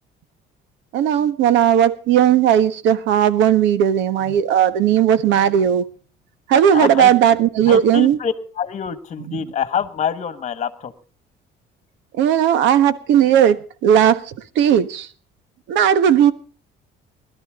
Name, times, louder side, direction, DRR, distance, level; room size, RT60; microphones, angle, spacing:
voice 1, 0.9-5.9 6.5-8.2 12.2-15.1 15.7-16.3, right 9 dB, 85° right, 1.4 m, -16 dB
voice 2, 6.7-7.1 7.7-10.9, left 8 dB, 40° left, 1.5 m, -25 dB
21.0 x 12.5 x 3.8 m
cardioid pair, 140°, 19 cm